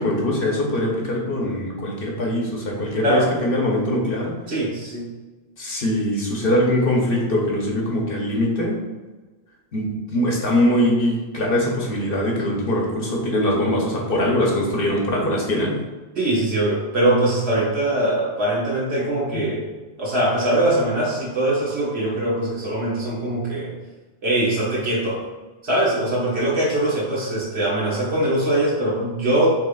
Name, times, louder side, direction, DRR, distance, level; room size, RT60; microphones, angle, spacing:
voice 1, 0.0-4.3 5.6-8.8 9.7-15.7 19.3-19.5, left 1 dB, 55° left, -2 dB, 1.0 m, -22 dB
voice 2, 4.5-5.1 16.1-19.7 20.0-23.7 24.2-25.2 25.6-29.5, right 1 dB, 65° right, -6 dB, 1.6 m, -22 dB
5.7 x 3.3 x 2.3 m, 1.2 s
omnidirectional pair, 1.2 m